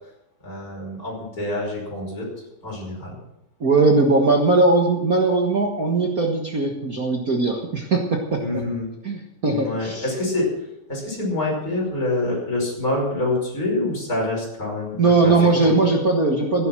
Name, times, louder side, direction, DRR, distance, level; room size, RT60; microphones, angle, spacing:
voice 1, 0.4-2.3 2.6-3.2 8.4-8.9 9.5-10.5 10.9-15.3 15.6-15.8, left 2 dB, 25° left, -2 dB, 5.8 m, -26 dB
voice 2, 3.6-8.6 9.0-10.0 15.0-16.7, right 3 dB, 70° right, 1 dB, 0.8 m, -19 dB
15.5 x 11.0 x 6.2 m, 0.84 s
omnidirectional pair, 4.1 m